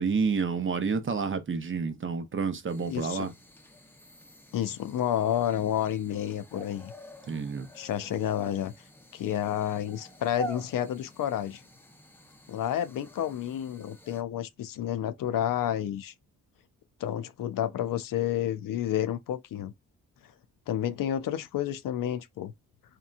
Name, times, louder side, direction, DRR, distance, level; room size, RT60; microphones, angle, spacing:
voice 1, 0.0-3.3 7.3-7.7, right 5 dB, 35° right, 0.6 m, -29 dB
sound 1, 2.7-14.2, equal, 5° left, 0.6 m, -47 dB
voice 2, 2.9-3.3 4.5-6.9 7.8-8.7 9.1-11.6 12.5-16.1 17.0-19.7 20.7-22.5, left 10 dB, 65° left, 0.5 m, -30 dB
2.8 x 2.3 x 2.4 m
cardioid pair, 60°, 37 cm